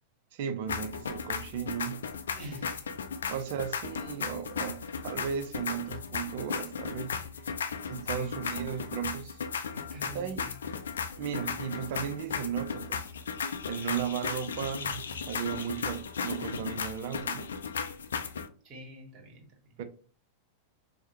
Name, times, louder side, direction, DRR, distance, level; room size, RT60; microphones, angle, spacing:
voice 1, 0.3-2.0 3.3-7.2 7.9-9.4 10.1-10.5 11.2-13.1 13.7-17.5 19.8-19.9, right 8 dB, 50° right, 0.5 m, -35 dB
sound 1, 0.7-18.5, left 6 dB, 65° left, 0.4 m, -36 dB
voice 2, 2.4-3.4 7.9-8.4 9.7-10.6 18.6-19.7, right 1 dB, 30° right, 1.4 m, -47 dB
4.7 x 2.1 x 2.9 m
figure-of-eight pair, 90°, 0 cm